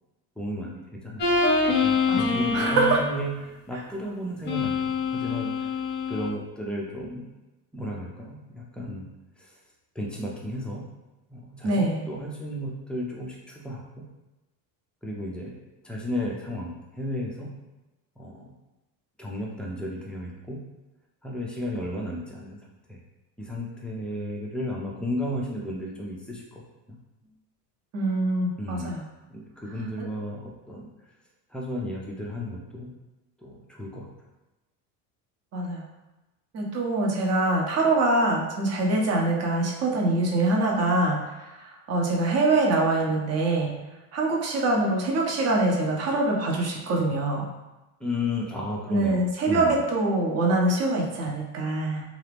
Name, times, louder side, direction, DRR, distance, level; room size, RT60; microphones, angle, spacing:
voice 1, 0.4-1.3 1.7-5.5 6.1-7.3 7.7-9.1 9.4-9.5 10.0-10.9 11.3-14.0 15.0-15.5 15.8-17.5 18.2-18.5 19.2-20.6 21.2-22.6 22.9-23.0 23.4-26.6 26.9-27.0 28.6-28.9 29.3-30.9 31.5-32.9 33.4-34.1 48.0-49.8, left 1 dB, ahead, -3 dB, 0.3 m, -33 dB
sound 1, 1.2-3.1 4.4-6.3, left 4 dB, 25° left, 0.7 m, -25 dB
voice 2, 2.1-3.0 11.6-12.1 27.9-29.0 35.5-35.8 36.5-43.7 44.1-47.5 48.9-52.0, right 2 dB, 35° right, -1 dB, 0.7 m, -24 dB
2.7 x 2.5 x 3.3 m, 1.0 s
supercardioid pair, 110°, 46 cm